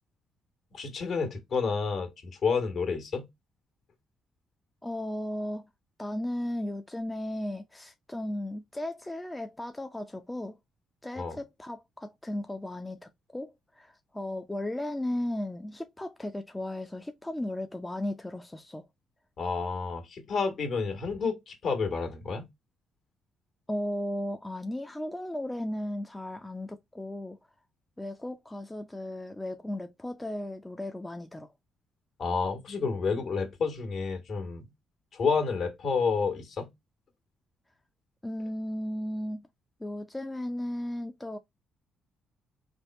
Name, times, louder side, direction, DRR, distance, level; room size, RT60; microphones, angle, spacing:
voice 1, 0.7-3.3 11.1-11.4 19.4-22.5 32.2-34.7 35.1-36.7, left 5 dB, 60° left, 1.5 m, -30 dB
voice 2, 4.8-5.7 6.0-10.6 11.0-18.9 23.7-27.4 28.0-31.5 38.2-39.5 39.8-41.4, left 1 dB, 10° left, 0.5 m, -35 dB
3.4 x 2.3 x 4.1 m
cardioid pair, 90°, 0 cm